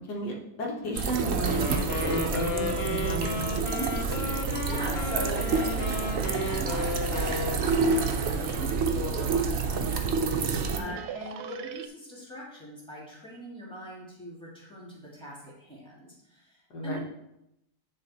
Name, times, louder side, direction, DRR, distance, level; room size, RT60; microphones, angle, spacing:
voice 1, 0.0-3.9 10.7-11.0 16.7-17.0, right 1 dB, 75° left, -1 dB, 1.8 m, -34 dB
sound 1, 0.9-10.8, right 5 dB, 60° right, 0.7 m, -28 dB
sound 2, 1.1-9.6 10.1-10.2 10.4-11.9, right 9 dB, 75° right, 1.1 m, -44 dB
Wind instrument woodwind instrument, 1.4-8.9, left 3 dB, 50° left, 0.9 m, -34 dB
voice 2, 4.6-16.6 16.8-17.0, equal, 5° left, -6 dB, 2.1 m, -41 dB
9.8 x 3.4 x 4.2 m, 0.83 s
omnidirectional pair, 1.8 m